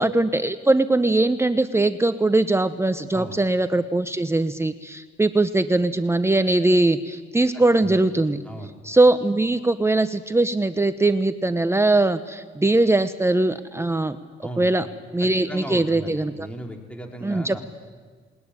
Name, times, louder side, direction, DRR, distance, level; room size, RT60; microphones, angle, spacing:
voice 1, 0.0-8.4 8.8-14.2 14.6-14.9 15.1-16.5 17.2-17.6, right 2 dB, 15° right, 10 dB, 0.8 m, -21 dB
voice 2, 7.5-8.0 8.5-8.7 14.4-14.7 15.5-17.6, right 1 dB, 5° left, 2 dB, 3.6 m, -36 dB
20.5 x 20.0 x 9.8 m, 1.5 s
cardioid pair, 90°, 20 cm